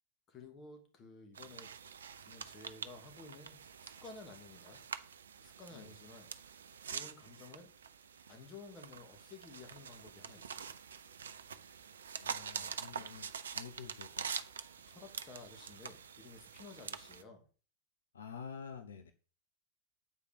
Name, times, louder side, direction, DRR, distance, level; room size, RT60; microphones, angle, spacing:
voice 1, 0.3-1.7 2.3-4.8 5.4-6.3 6.8-7.7 8.3-10.8 12.5-13.1 14.9-17.5, left 3 dB, 25° left, 2.7 m, -54 dB
sound 1, 1.3-17.2, right 7 dB, 65° right, 0.6 m, -46 dB
voice 2, 12.2-14.3 18.1-19.1, left 6 dB, 70° left, 0.7 m, -49 dB
8.5 x 4.9 x 6.9 m
figure-of-eight pair, 90°, 0 cm